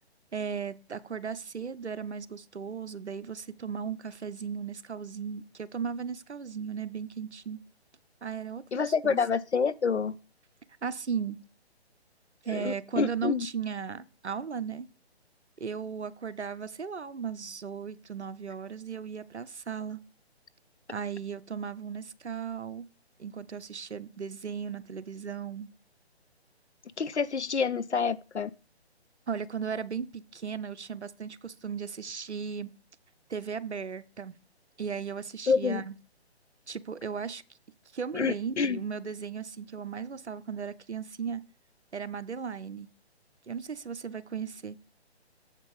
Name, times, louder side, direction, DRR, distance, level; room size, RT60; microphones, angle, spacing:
voice 1, 0.3-7.6 8.2-8.6 9.0-9.2 10.8-11.4 12.4-14.9 15.6-20.0 20.9-22.9 23.2-25.7 29.3-32.7 33.3-34.4 34.8-35.9 36.7-37.4 37.9-41.4 41.9-42.9 43.5-44.8, right 6 dB, 85° right, 0.7 m, -36 dB
voice 2, 8.7-10.2 12.5-13.5 27.0-28.5 35.5-35.8 38.1-38.8, left 5 dB, 85° left, 0.6 m, -27 dB
7.4 x 5.2 x 5.3 m
figure-of-eight pair, 140°, 33 cm